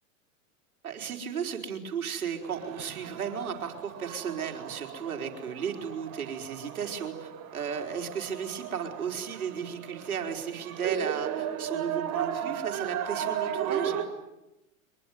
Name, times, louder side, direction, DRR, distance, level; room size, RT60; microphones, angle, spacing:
voice 1, 0.8-14.0, right 7 dB, 85° right, 4 dB, 4.9 m, -34 dB
sound 1, 2.4-14.0, right 9 dB, 40° right, 4.9 m, -36 dB
24.5 x 23.0 x 9.5 m, 0.92 s
hypercardioid pair, 105°, 42 cm